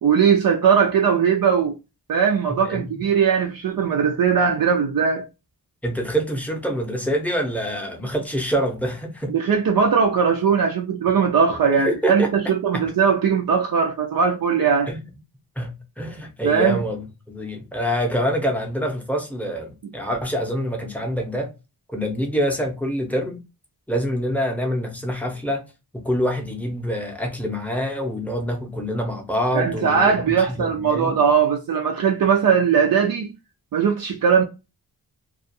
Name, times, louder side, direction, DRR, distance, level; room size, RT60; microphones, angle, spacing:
voice 1, 0.0-1.8 2.1-5.3 9.3-14.9 16.4-16.8 29.5-33.3 33.7-34.4, right 6 dB, 60° right, 0.5 m, -19 dB
voice 2, 2.5-3.0 5.8-9.3 11.7-12.9 14.9-15.0 15.6-15.7 16.0-21.5 21.9-23.4 23.9-25.6 25.9-31.2, equal, 5° left, 0.6 m, -26 dB
2.3 x 2.3 x 2.6 m
wide cardioid pair, 160°, 39 cm